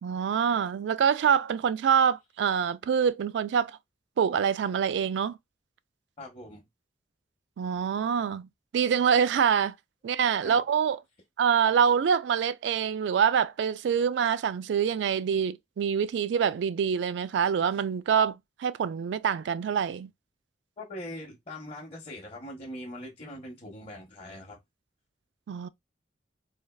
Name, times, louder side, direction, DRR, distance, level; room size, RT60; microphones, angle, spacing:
voice 1, 0.0-3.8 4.2-5.3 7.6-9.7 10.0-11.0 11.4-20.1 25.5-25.7, right 7 dB, 70° right, 0.3 m, -25 dB
voice 2, 6.2-6.6 10.4-10.6 20.8-24.6, left 1 dB, 35° left, 0.7 m, -41 dB
3.2 x 2.3 x 2.2 m
head